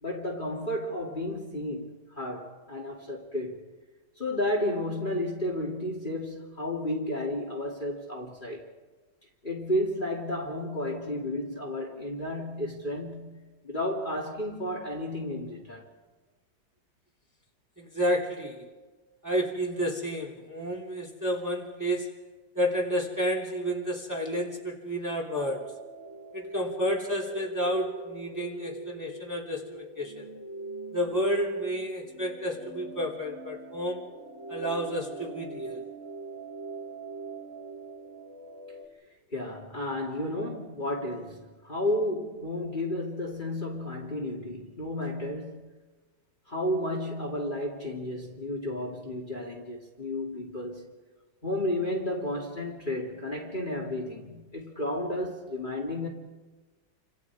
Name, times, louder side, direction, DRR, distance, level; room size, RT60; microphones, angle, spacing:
voice 1, 0.0-3.6 4.2-8.7 9.4-15.9 39.3-45.7 46.5-51.0 51.4-56.1, left 1 dB, 25° left, 2.7 m, -32 dB
voice 2, 17.8-18.7 19.2-22.1 22.5-25.8 26.3-30.3 30.9-34.1 34.5-35.8, equal, 10° right, 2.9 m, -30 dB
sound 1, 25.3-38.8, right 2 dB, 40° right, 3.4 m, -42 dB
29.0 x 26.5 x 4.8 m
omnidirectional pair, 2.1 m